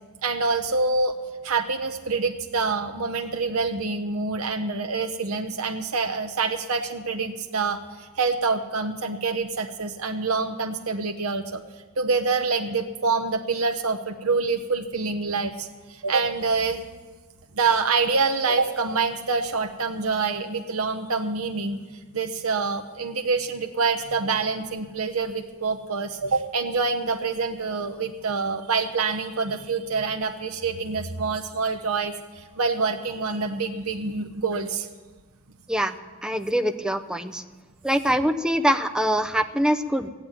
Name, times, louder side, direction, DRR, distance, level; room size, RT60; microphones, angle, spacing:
voice 1, 0.2-1.1 1.4-11.6 12.0-16.8 17.5-21.8 22.1-34.9, right 4 dB, 75° right, 5 dB, 0.9 m, -26 dB
voice 2, 36.2-37.4 37.8-40.1, equal, 5° right, 7 dB, 0.7 m, -23 dB
14.5 x 9.0 x 9.0 m, 1.3 s
head